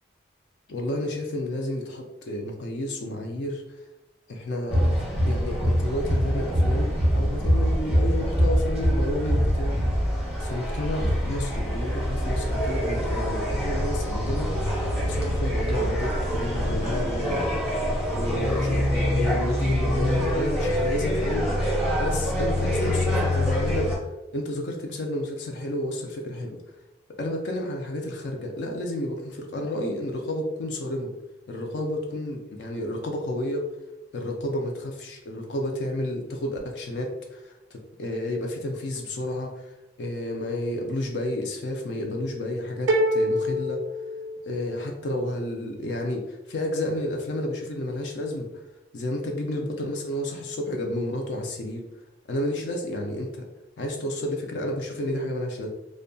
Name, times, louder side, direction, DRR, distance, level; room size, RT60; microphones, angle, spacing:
voice 1, 0.7-3.6 4.3-10.1 10.4-14.5 15.0-17.8 18.1-21.5 22.0-23.9 24.3-26.6 27.2-31.1 31.5-33.7 34.1-43.8 44.4-48.5 48.9-51.9 52.3-53.4 53.8-55.7, left 1 dB, 65° left, 2 dB, 0.4 m, -31 dB
sound 1, 4.7-24.0, equal, 5° right, 0.7 m, -25 dB
sound 2, 42.9-44.9, equal, 70° right, 0.4 m, -25 dB
2.7 x 2.1 x 2.6 m, 0.97 s
head